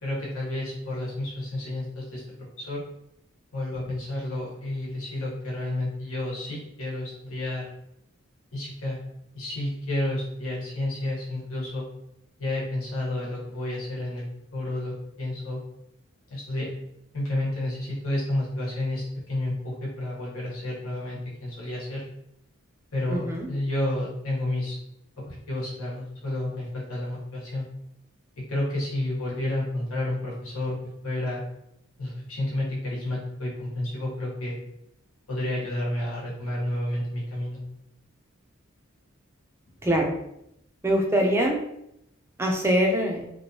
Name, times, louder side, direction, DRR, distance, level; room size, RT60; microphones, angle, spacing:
voice 1, 0.0-2.2 2.6-2.8 3.5-7.7 8.5-9.0 9.3-11.9 12.4-14.2 14.5-15.6 16.3-16.7 17.1-22.0 22.9-24.8 25.2-27.6 28.4-30.8 31.0-31.4 32.0-34.6 35.3-37.6, left 1 dB, 90° left, -5 dB, 1.1 m, -30 dB
voice 2, 23.1-23.5 39.8-40.1 40.8-41.6 42.4-43.3, equal, 10° right, 0 dB, 0.4 m, -23 dB
3.0 x 2.6 x 2.8 m, 0.79 s
head